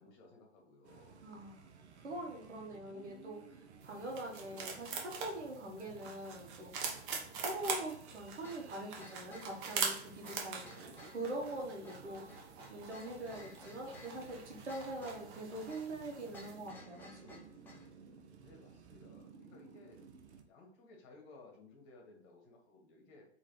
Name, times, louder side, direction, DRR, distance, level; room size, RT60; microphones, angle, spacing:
voice 1, 0.0-1.2 2.1-2.3 2.9-3.1 10.5-11.1 12.1-12.4 18.3-20.0 20.4-23.3, left 2 dB, 45° left, 0 dB, 1.6 m, -59 dB
sound 1, 0.8-20.4, right 6 dB, 75° right, 0.7 m, -57 dB
voice 2, 1.2-1.6 2.0-6.7 7.3-12.2 12.7-17.4, right 1 dB, 90° right, 0 dB, 1.3 m, -43 dB
sound 2, 3.8-16.7, right 5 dB, 50° right, 1.0 m, -44 dB
sound 3, 8.4-17.9, left 1 dB, 5° left, 0.4 m, -56 dB
3.9 x 3.0 x 3.1 m, 0.66 s
hypercardioid pair, 115°, 34 cm